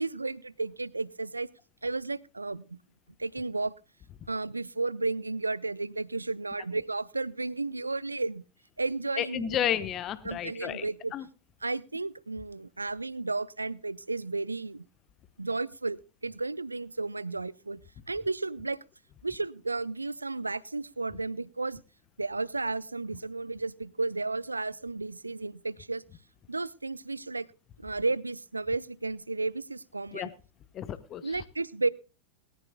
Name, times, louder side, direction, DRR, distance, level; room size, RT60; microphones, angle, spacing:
voice 1, 0.0-1.5 1.8-2.8 3.2-3.7 4.3-8.4 8.8-9.6 10.2-11.1 11.6-14.8 15.4-17.8 18.1-18.8 19.2-21.8 22.2-26.0 26.5-27.5 27.8-30.3 31.2-31.9, right 3 dB, 80° right, 22 dB, 0.5 m, -33 dB
voice 2, 9.2-10.9 11.1-11.3 30.1-30.3 30.7-31.4, left 10 dB, 30° left, 14 dB, 1.0 m, -32 dB
21.0 x 14.5 x 2.2 m, 0.32 s
figure-of-eight pair, 90°, 0 cm